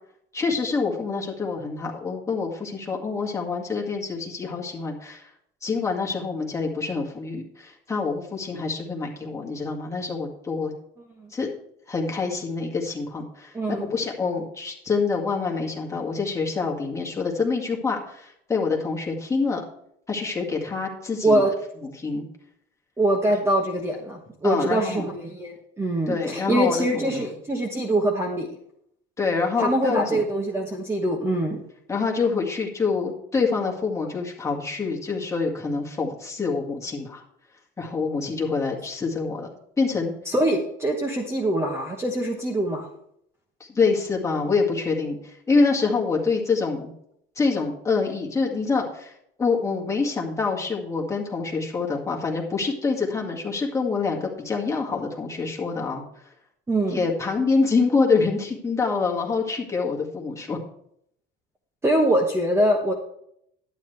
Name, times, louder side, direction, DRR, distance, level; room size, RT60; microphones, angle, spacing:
voice 1, 0.3-5.3 5.6-10.7 11.3-11.5 11.9-19.6 20.1-21.4 21.8-22.3 24.4-25.1 26.1-27.3 29.2-30.2 31.9-37.2 37.8-40.1 43.6-46.9 47.4-49.1 49.4-56.3 56.9-60.6, left 4 dB, 15° left, -1 dB, 2.0 m, -26 dB
voice 2, 13.5-13.9 21.2-21.5 23.0-28.5 29.6-31.6 40.3-42.9 56.7-57.0 61.8-62.9, right 1 dB, 10° right, 2 dB, 1.1 m, -23 dB
11.5 x 9.5 x 3.3 m, 0.70 s
cardioid pair, 160°, 21 cm